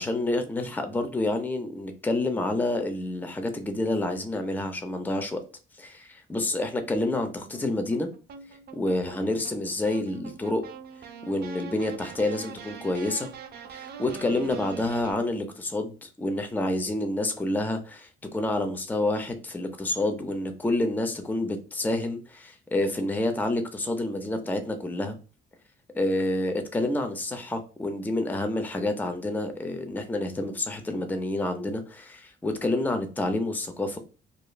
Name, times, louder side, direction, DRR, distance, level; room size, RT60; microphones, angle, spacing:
voice 1, 0.0-5.4 5.8-8.1 8.7-10.6 11.3-13.3 13.7-25.2 25.9-34.0, left 2 dB, 10° left, 0.4 m, -28 dB
sound 1, 7.4-15.1, right 6 dB, 55° right, 0.5 m, -43 dB
2.9 x 2.4 x 2.2 m
cardioid pair, 90°, 20 cm